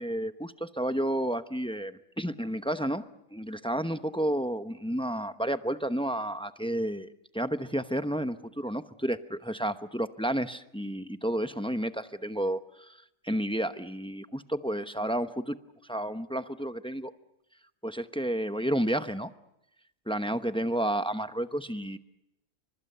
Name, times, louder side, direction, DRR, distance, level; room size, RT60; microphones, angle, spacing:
voice 1, 0.0-3.0 3.3-7.1 7.3-13.0 13.2-15.6 15.9-17.1 17.8-19.3 20.1-22.0, right 1 dB, 5° left, 10 dB, 0.6 m, -31 dB
30.0 x 25.0 x 6.8 m, 0.84 s
omnidirectional pair, 1.5 m